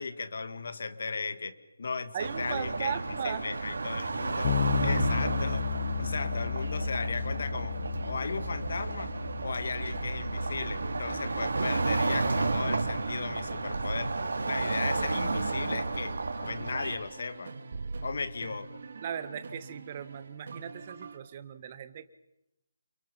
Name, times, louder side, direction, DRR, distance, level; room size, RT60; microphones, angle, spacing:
voice 1, 0.0-3.0 3.2-4.5 4.8-5.6 6.0-7.8 8.1-9.1 9.4-14.1 14.4-16.2 16.4-17.5 18.0-18.7, left 4 dB, 55° left, 10 dB, 2.2 m, -36 dB
voice 2, 2.1-3.4 19.0-22.1, right 8 dB, 25° right, 12 dB, 1.4 m, -37 dB
sound 1, 2.2-17.0, right 3 dB, 85° right, 3.8 m, -32 dB
Bass guitar, 4.4-14.1, left 8 dB, 25° left, 0.8 m, -35 dB
sound 2, 9.9-21.2, right 3 dB, 50° right, 2.3 m, -43 dB
29.0 x 28.5 x 5.5 m, 0.88 s
hypercardioid pair, 170°, 0 cm